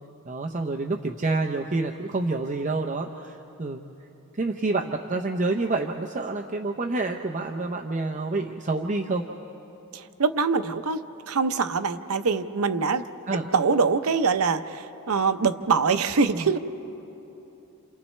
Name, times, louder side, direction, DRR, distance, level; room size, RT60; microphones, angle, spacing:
voice 1, 0.3-3.8 4.4-9.2 13.3-13.4 16.3-16.5, right 3 dB, 35° right, 2 dB, 0.6 m, -28 dB
voice 2, 9.9-13.0 13.5-16.6, right 5 dB, 75° right, 10 dB, 0.7 m, -24 dB
29.0 x 28.5 x 3.2 m, 3.0 s
head